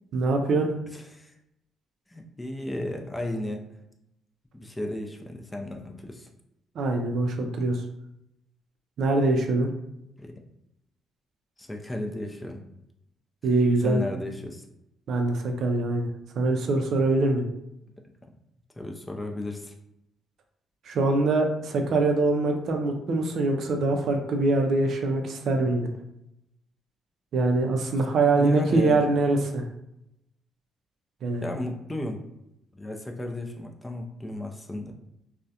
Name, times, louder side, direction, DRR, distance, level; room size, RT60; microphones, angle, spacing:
voice 1, 0.1-0.7 6.8-7.8 9.0-9.7 13.4-14.0 15.1-16.1 16.4-17.5 20.9-25.9 27.3-29.6 31.2-31.5, right 2 dB, 65° right, 3 dB, 0.4 m, -23 dB
voice 2, 0.9-1.3 2.1-3.6 4.5-6.3 10.2-10.3 11.6-12.6 13.8-14.7 18.8-19.7 28.4-29.0 31.4-32.2 32.7-34.9, left 1 dB, 15° left, 2 dB, 0.3 m, -34 dB
2.3 x 2.0 x 2.7 m, 0.82 s
cardioid pair, 90°, 0 cm